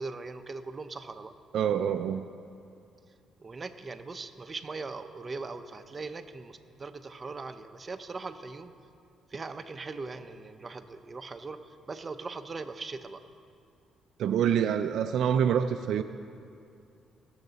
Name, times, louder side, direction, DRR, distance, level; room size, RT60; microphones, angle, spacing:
voice 1, 0.0-1.3 3.4-8.7 9.3-13.2, right 3 dB, 35° right, 8 dB, 0.6 m, -40 dB
voice 2, 1.5-2.2 14.2-16.0, right 8 dB, 75° right, 9 dB, 0.3 m, -26 dB
18.5 x 6.5 x 4.0 m, 2.6 s
cardioid pair, 90°, 0 cm